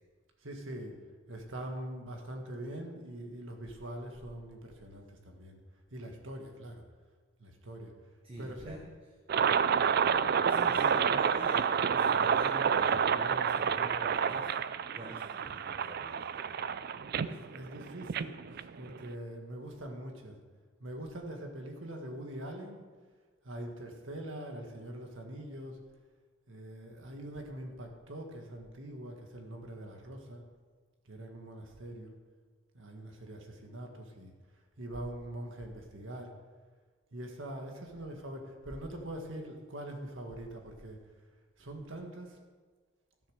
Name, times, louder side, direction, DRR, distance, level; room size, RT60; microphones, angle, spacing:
voice 1, 0.4-1.0 1.3-5.6 5.9-6.8 7.4-7.9 8.4-8.8 17.1-20.4 20.8-22.8 23.4-25.8 26.5-30.4 31.0-32.1 32.7-36.3 37.1-41.0 41.6-42.4, right 1 dB, 70° right, 3 dB, 1.8 m, -43 dB
voice 2, 8.2-8.9 10.4-14.5 14.9-16.6, right 1 dB, 25° right, 1 dB, 1.0 m, -46 dB
sound 1, 9.3-19.1, right 7 dB, 50° right, 0.4 m, -29 dB
13.0 x 7.0 x 6.4 m, 1.5 s
head